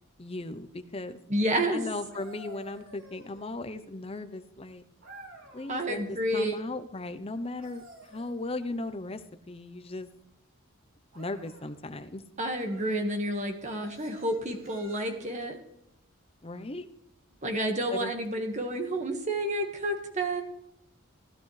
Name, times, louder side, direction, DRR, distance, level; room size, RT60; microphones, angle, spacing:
voice 1, 0.2-1.2 1.7-4.8 5.5-10.1 11.1-12.2 16.4-16.9 17.9-18.1, left 2 dB, 30° left, 10 dB, 0.7 m, -37 dB
voice 2, 1.3-1.8 5.7-6.6 12.4-15.6 17.4-20.4, right 1 dB, 35° right, 5 dB, 1.7 m, -30 dB
sound 1, 1.9-3.9 5.0-6.0 7.4-9.0 11.1-11.7 12.5-13.0 13.6-15.4 17.3-17.5, right 2 dB, 70° right, 3.7 m, -52 dB
16.0 x 12.0 x 3.3 m, 0.81 s
head